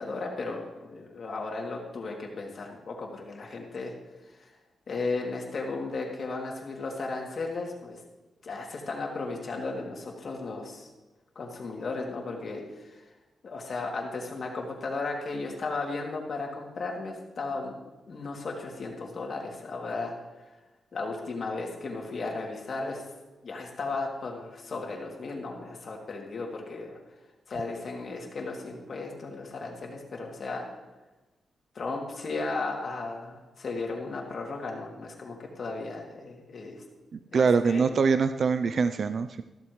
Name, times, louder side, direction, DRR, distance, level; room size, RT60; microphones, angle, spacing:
voice 1, 0.0-3.9 4.3-4.5 4.9-8.0 8.4-10.9 11.3-13.0 13.4-17.8 18.1-20.1 20.9-23.0 23.4-27.0 27.5-30.6 31.7-36.8 37.3-37.9, left 3 dB, 45° left, 0 dB, 2.6 m, -35 dB
voice 2, 37.3-39.4, right 5 dB, 50° right, 11 dB, 0.4 m, -23 dB
14.5 x 13.5 x 3.2 m, 1.1 s
wide cardioid pair, 155°, 0 cm